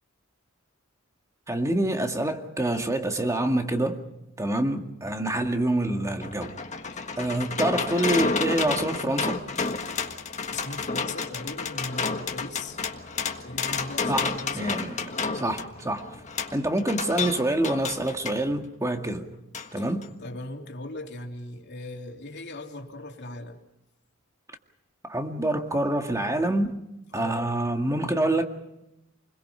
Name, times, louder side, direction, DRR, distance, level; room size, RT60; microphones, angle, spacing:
voice 1, 1.5-4.0 4.4-6.6 7.2-9.4 14.1-15.1 15.3-16.2 16.5-19.3 19.7-20.1 25.0-26.8 27.1-28.5, right 1 dB, 15° right, 2.0 m, -26 dB
sound 1, 5.8-18.4 19.5-19.7 20.0-20.1, left 4 dB, 35° left, 1.5 m, -31 dB
voice 2, 6.9-7.5 9.9-10.1 10.5-12.8 13.4-14.8 19.8-19.9 20.2-23.6 27.1-27.6, left 2 dB, 55° left, 3.2 m, -39 dB
29.0 x 21.5 x 5.7 m
head